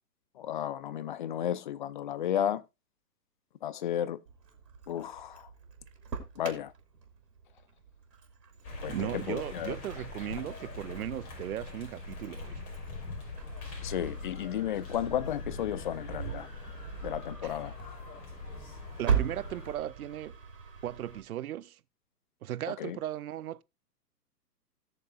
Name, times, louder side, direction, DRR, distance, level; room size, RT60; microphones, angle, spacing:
voice 1, 0.4-2.6 3.6-4.2 4.9-5.5 6.4-6.7 8.8-9.8 13.8-16.5 17.0-17.7 22.8-23.0, left 10 dB, 30° left, 0.5 m, -33 dB
Engine starting, 4.3-21.2, right 7 dB, 75° right, 2.8 m, -40 dB
sound 1, 8.6-19.8, left 3 dB, 60° left, 5.4 m, -42 dB
voice 2, 8.9-12.6 17.4-17.5 19.0-20.4 20.8-21.8 22.4-23.6, right 12 dB, 60° right, 0.7 m, -37 dB
17.5 x 6.8 x 2.4 m
hypercardioid pair, 130°, 50 cm